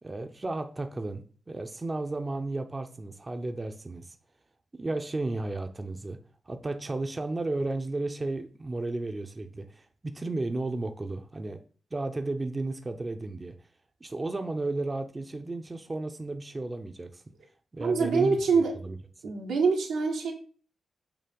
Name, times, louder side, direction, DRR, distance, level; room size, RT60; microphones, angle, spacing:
voice 1, 0.0-4.2 4.8-6.2 6.5-11.6 11.9-13.5 14.0-17.2 17.7-18.4 18.8-19.0, right 2 dB, 30° right, 0.7 m, -33 dB
voice 2, 17.8-18.7 19.2-20.3, right 4 dB, 85° right, 1.3 m, -25 dB
6.9 x 2.8 x 5.3 m
supercardioid pair, 40°, 0 cm